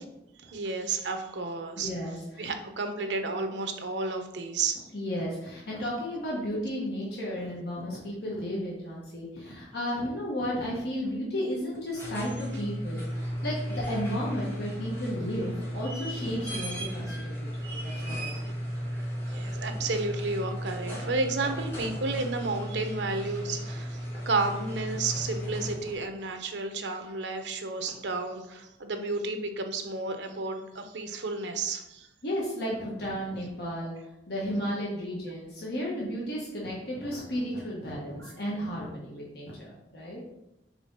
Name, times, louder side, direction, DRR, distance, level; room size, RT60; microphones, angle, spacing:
voice 1, 0.5-1.9 2.4-4.8 18.9-32.1 38.2-38.3, right 3 dB, 85° right, 6 dB, 0.8 m, -32 dB
voice 2, 1.8-2.5 4.9-18.6 32.2-33.9 34.3-40.2, equal, 65° left, -5 dB, 1.3 m, -33 dB
sound 1, 11.7-26.1 27.9-28.0, equal, 15° left, 1.7 m, -35 dB
4.9 x 4.5 x 5.3 m, 0.88 s
head